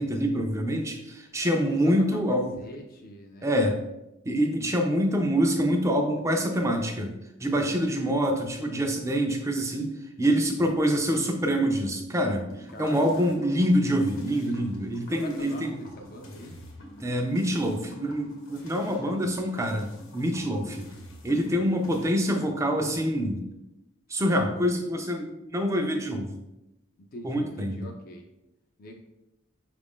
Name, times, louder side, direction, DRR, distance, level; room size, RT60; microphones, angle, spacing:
voice 1, 0.0-2.5 3.4-3.8 4.3-7.1 7.4-15.7 17.0-20.9 21.2-23.4 24.1-26.4 27.2-27.9, equal, 15° right, 3 dB, 0.4 m, -26 dB
voice 2, 1.4-3.6 7.4-7.8 12.7-13.3 15.1-16.6 21.5-21.8 24.1-24.2 27.0-28.3 28.8-29.0, left 1 dB, 45° left, 2 dB, 0.4 m, -44 dB
sound 1, 12.5-22.0, equal, 85° left, 0.9 m, -46 dB
4.8 x 2.5 x 3.5 m, 0.93 s
head